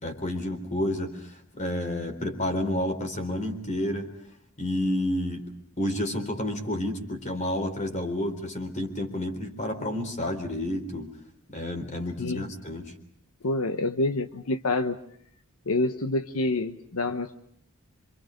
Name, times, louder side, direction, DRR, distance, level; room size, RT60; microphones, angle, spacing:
voice 1, 0.0-4.2 4.6-5.5 5.8-11.1 11.5-12.9, left 1 dB, 35° left, 6 dB, 3.8 m, -30 dB
voice 2, 13.4-15.0 15.7-17.3, left 2 dB, 75° left, 9 dB, 1.0 m, -27 dB
27.0 x 26.0 x 5.2 m, 0.68 s
head